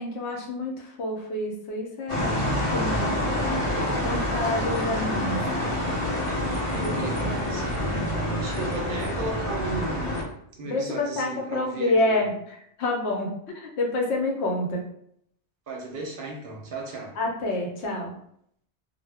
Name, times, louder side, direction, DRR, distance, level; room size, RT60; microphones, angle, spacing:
voice 1, 0.0-2.4 2.6-3.8 4.0-5.4 6.7-7.3 7.8-8.0 8.5-8.7 10.6-14.8 17.2-18.1, left 2 dB, 75° left, 0 dB, 0.9 m, -28 dB
sound 1, 2.1-10.2, left 1 dB, 35° left, 0.6 m, -27 dB
voice 2, 6.7-8.0 8.4-12.2 15.7-17.2, right 3 dB, 60° right, -1 dB, 0.7 m, -35 dB
2.1 x 2.0 x 3.3 m, 0.70 s
omnidirectional pair, 1.1 m